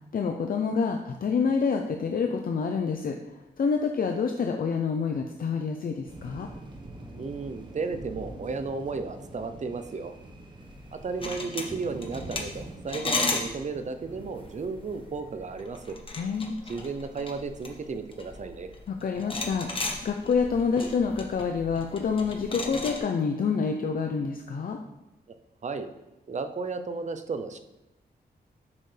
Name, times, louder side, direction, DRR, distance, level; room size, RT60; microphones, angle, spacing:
voice 1, 0.1-6.5 16.2-16.6 18.9-19.7 20.0-24.8, left 5 dB, 55° left, 4 dB, 0.6 m, -27 dB
sound 1, 6.0-15.6, right 1 dB, 25° right, 1.2 m, -45 dB
voice 2, 7.2-10.1 10.9-16.0 16.7-18.7 25.6-25.9 26.3-27.6, right 4 dB, 45° right, 9 dB, 0.7 m, -34 dB
sound 2, 10.8-23.0, left 3 dB, 30° left, 1.2 m, -35 dB
9.7 x 6.7 x 3.4 m, 0.95 s
wide cardioid pair, 120°, 17 cm